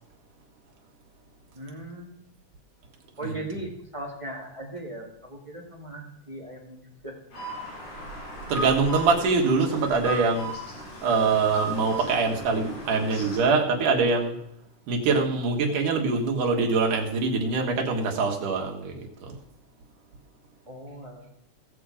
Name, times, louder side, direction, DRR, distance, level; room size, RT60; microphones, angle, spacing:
voice 1, 1.5-2.1 3.2-7.1 20.7-21.3, right 1 dB, 10° right, -2 dB, 2.0 m, -38 dB
sound 1, 7.3-13.4, right 1 dB, 70° left, 5.9 m, -36 dB
voice 2, 8.5-10.5 11.0-14.4 14.9-19.0 19.3-19.4, right 4 dB, 80° right, 2 dB, 3.3 m, -24 dB
17.5 x 7.1 x 5.0 m, 0.75 s
omnidirectional pair, 3.6 m